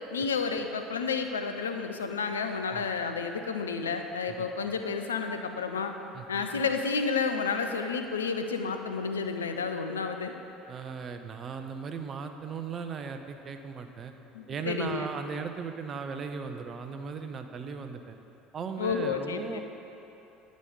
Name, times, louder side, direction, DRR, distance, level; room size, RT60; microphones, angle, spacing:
voice 1, 0.1-5.9 6.3-10.3 14.3-15.1 18.8-19.6, left 5 dB, 80° left, 6 dB, 0.4 m, -31 dB
voice 2, 6.1-6.5 10.7-14.1 14.5-18.2 18.5-19.6, right 5 dB, 40° right, 7 dB, 0.6 m, -37 dB
9.9 x 5.1 x 5.5 m, 3.0 s
figure-of-eight pair, 65°, 0 cm